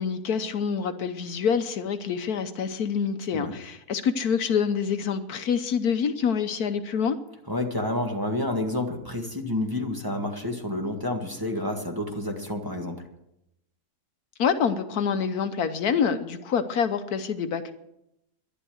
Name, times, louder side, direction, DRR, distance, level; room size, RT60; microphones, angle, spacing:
voice 1, 0.0-7.2 14.4-17.7, left 6 dB, 70° left, 10 dB, 1.4 m, -26 dB
voice 2, 7.5-13.0, left 1 dB, 15° right, 1 dB, 1.8 m, -29 dB
12.0 x 11.0 x 7.8 m, 0.82 s
omnidirectional pair, 1.7 m